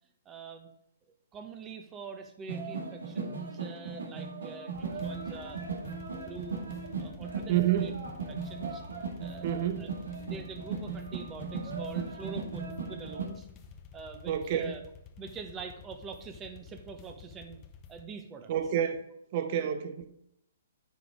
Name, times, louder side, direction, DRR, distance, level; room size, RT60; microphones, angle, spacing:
voice 1, 0.2-0.7 1.3-5.6 6.2-6.6 7.0-7.9 8.3-8.8 9.2-9.9 10.3-13.5 13.9-14.8 15.2-17.6 17.9-18.5 19.5-19.6, right 5 dB, 20° right, 1.0 m, -45 dB
sound 1, 2.5-13.3, right 5 dB, 75° right, 2.0 m, -37 dB
sound 2, 4.7-18.0, left 6 dB, 25° left, 0.8 m, -51 dB
voice 2, 7.5-7.9 9.4-9.9 14.3-14.7 18.5-19.0 19.3-20.1, right 10 dB, 45° right, 0.8 m, -28 dB
9.0 x 5.2 x 3.6 m
hypercardioid pair, 130°, 0 cm